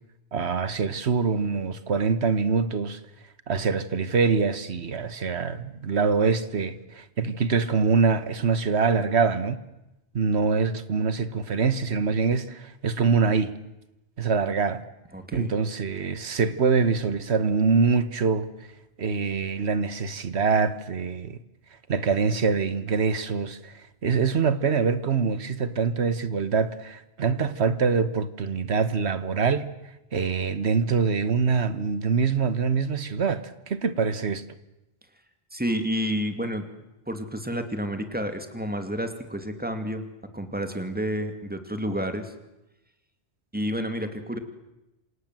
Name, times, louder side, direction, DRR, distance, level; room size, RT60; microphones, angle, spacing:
voice 1, 0.3-3.0 3.5-9.6 10.1-13.6 14.2-14.8 15.3-18.5 19.0-21.4 21.9-29.7 30.1-34.4, right 5 dB, 85° right, 1.6 m, -24 dB
voice 2, 15.1-15.5 35.5-36.6 37.1-40.0 40.3-42.3 43.5-44.4, equal, 10° right, 2.4 m, -30 dB
27.5 x 26.5 x 7.7 m
omnidirectional pair, 1.1 m